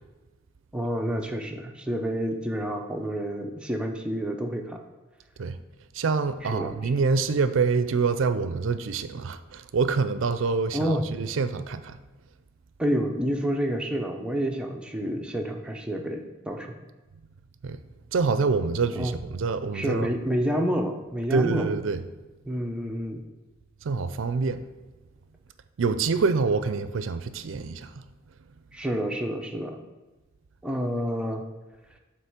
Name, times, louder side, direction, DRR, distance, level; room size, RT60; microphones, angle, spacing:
voice 1, 0.7-4.8 6.4-6.9 10.7-11.1 12.8-16.8 19.0-19.1 19.7-21.7 22.5-23.2 28.7-29.8 30.6-31.4, equal, 5° right, 2 dB, 0.6 m, -29 dB
voice 2, 5.9-12.0 17.6-17.8 18.1-20.1 21.3-22.0 23.8-24.6 25.8-28.0, right 4 dB, 65° right, 11 dB, 0.4 m, -26 dB
7.8 x 3.1 x 5.9 m, 1.2 s
head